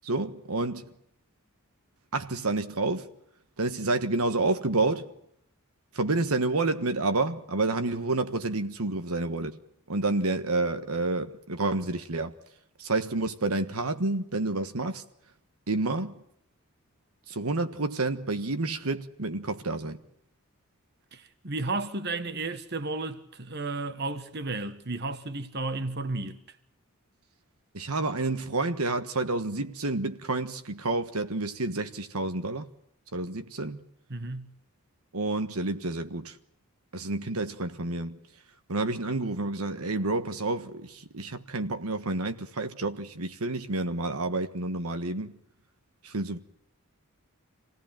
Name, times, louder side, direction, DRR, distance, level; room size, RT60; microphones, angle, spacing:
voice 1, 0.0-0.8 2.1-3.1 3.6-5.1 5.9-9.6 9.9-12.3 12.8-15.0 15.7-16.1 17.3-20.0 27.7-32.7 33.1-33.8 35.1-36.4 36.9-38.2 38.7-45.3 46.0-46.4, right 2 dB, 85° right, 1.4 m, -29 dB
voice 2, 21.1-26.4 34.1-34.6, right 3 dB, 50° right, 1.5 m, -33 dB
27.5 x 17.5 x 9.0 m
head